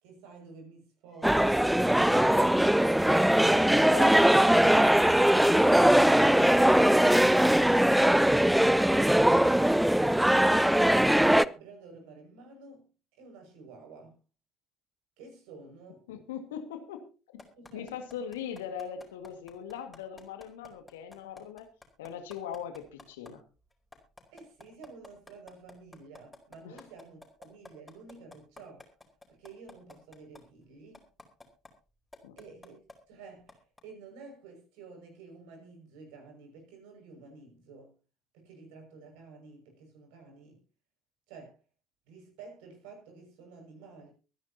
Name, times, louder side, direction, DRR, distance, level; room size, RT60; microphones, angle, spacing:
voice 1, 0.0-2.9 11.2-12.9 13.1-14.2 15.2-16.0 17.6-17.9 24.3-28.8 29.3-31.0 32.4-32.8 33.1-37.9 38.3-40.6 41.3-41.6 42.1-44.1, right 4 dB, 65° right, 6.1 m, -50 dB
Squeak, 1.1-5.2, right 2 dB, 20° right, 3.9 m, -51 dB
sound 1, 1.2-11.4, right 1 dB, 5° right, 0.6 m, -21 dB
voice 2, 16.1-17.1 17.3-17.4 17.7-21.7 22.0-23.4 26.6-26.8 32.2-32.4, left 8 dB, 70° left, 2.0 m, -40 dB
sound 2, 17.4-23.3 23.7-30.4 30.9-31.7 32.1-32.9 33.5-33.8, left 2 dB, 15° left, 4.6 m, -50 dB
24.5 x 10.5 x 2.9 m
figure-of-eight pair, 55°, 0 cm